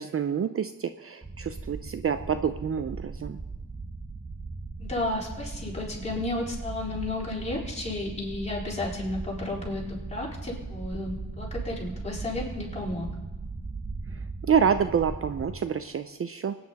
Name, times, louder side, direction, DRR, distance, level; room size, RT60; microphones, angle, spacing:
voice 1, 0.0-3.4 14.5-16.5, right 7 dB, 45° right, 10 dB, 0.6 m, -27 dB
sound 1, 1.2-15.6, right 3 dB, 20° right, 1.0 m, -38 dB
voice 2, 4.8-13.1, left 2 dB, 20° left, -5 dB, 4.7 m, -33 dB
24.0 x 9.6 x 4.1 m, 1.2 s
cardioid pair, 95°, 33 cm